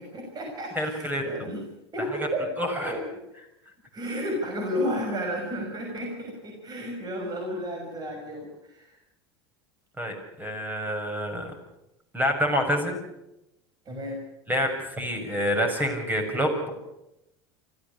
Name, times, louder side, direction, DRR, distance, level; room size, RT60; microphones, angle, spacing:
voice 1, 0.0-1.6 1.9-2.4 2.7-3.2 3.9-9.0 13.9-14.2, equal, 30° right, 2 dB, 6.2 m, -32 dB
voice 2, 0.7-1.2 2.6-2.9 10.0-11.5 12.1-13.0 14.5-16.8, equal, 15° right, 5 dB, 6.6 m, -27 dB
25.0 x 15.0 x 8.4 m, 0.88 s
supercardioid pair, 105°, 14 cm